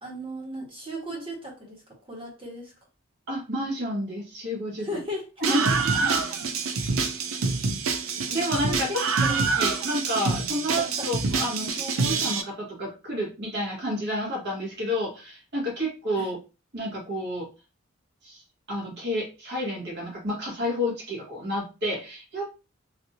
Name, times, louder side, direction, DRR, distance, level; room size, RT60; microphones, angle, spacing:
voice 1, 0.0-1.8 2.1-2.7 4.8-5.3 5.6-5.7 6.3-6.4 6.8-6.9 8.7-9.4 10.8-11.1 16.2-16.3, equal, 25° right, -3 dB, 1.4 m, -36 dB
voice 2, 3.3-4.9 5.4-5.7 5.9-6.3 8.3-16.4 16.7-17.5 18.2-18.4 18.7-22.5, equal, 55° right, -2 dB, 1.5 m, -30 dB
Screaming, 5.4-12.4, right 4 dB, 85° right, 0.5 m, -26 dB
3.3 x 2.7 x 2.6 m, 0.30 s
head